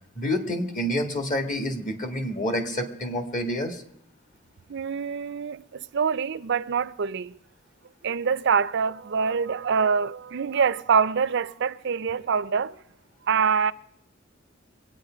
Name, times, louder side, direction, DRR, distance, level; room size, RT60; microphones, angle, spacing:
voice 1, 0.2-3.8, equal, 40° left, 1.7 m, -28 dB
voice 2, 4.7-7.4 8.0-12.8 13.3-13.7, right 6 dB, 60° right, 0.5 m, -25 dB
23.0 x 9.0 x 5.0 m
head